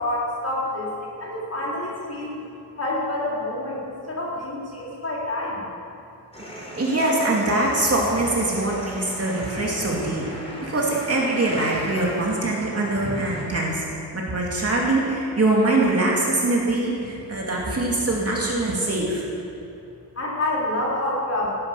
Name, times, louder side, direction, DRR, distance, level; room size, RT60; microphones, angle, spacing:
voice 1, 0.0-2.4 2.8-5.7 20.2-21.5, left 1 dB, 40° left, -5 dB, 4.3 m, -27 dB
sound 1, 6.3-13.4, equal, 15° left, 3.9 m, -36 dB
voice 2, 6.8-10.2 10.6-19.3, right 2 dB, 35° right, -3 dB, 2.4 m, -23 dB
16.5 x 10.5 x 7.2 m, 2.8 s
wide cardioid pair, 150°, 40 cm